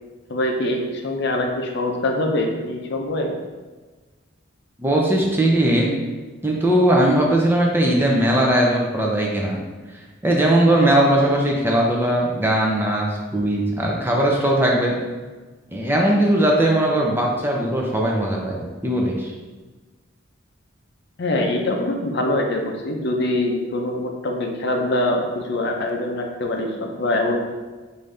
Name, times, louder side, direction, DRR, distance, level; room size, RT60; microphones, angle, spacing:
voice 1, 0.3-3.3 21.2-27.4, left 1 dB, 55° left, 2 dB, 0.5 m, -24 dB
voice 2, 4.8-6.0 6.4-9.6 10.2-15.0 15.7-19.3, right 1 dB, 10° right, -2 dB, 0.5 m, -19 dB
5.0 x 2.6 x 3.2 m, 1.3 s
head